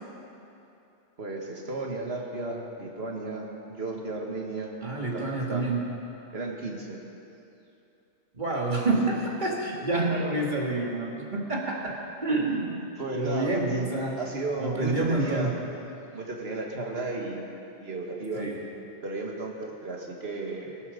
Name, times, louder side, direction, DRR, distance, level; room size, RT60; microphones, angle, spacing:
voice 1, 1.2-4.8 5.1-5.2 5.5-5.7 6.3-7.0 13.0-13.9 14.2-15.6 16.1-17.4 17.8-18.5 19.0-20.7, right 2 dB, 55° right, 0 dB, 2.1 m, -34 dB
voice 2, 4.8-5.8 8.3-11.9 12.2-12.8 13.1-14.2 14.6-15.5 18.3-18.5, right 2 dB, 40° right, -2 dB, 2.3 m, -28 dB
19.0 x 12.5 x 5.2 m, 2.8 s
omnidirectional pair, 1.2 m